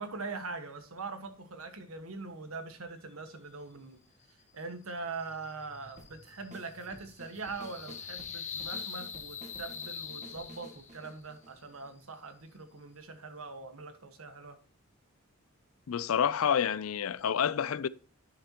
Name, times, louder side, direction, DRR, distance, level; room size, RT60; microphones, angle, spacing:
voice 1, 0.0-4.0 4.5-14.6, right 3 dB, 85° right, 1.5 m, -42 dB
sound 1, 5.1-11.1, left 6 dB, 35° left, 1.0 m, -44 dB
sound 2, 6.0-12.3, right 1 dB, 35° right, 1.8 m, -52 dB
voice 2, 15.9-17.9, left 8 dB, 75° left, 0.4 m, -28 dB
11.0 x 6.7 x 2.9 m
head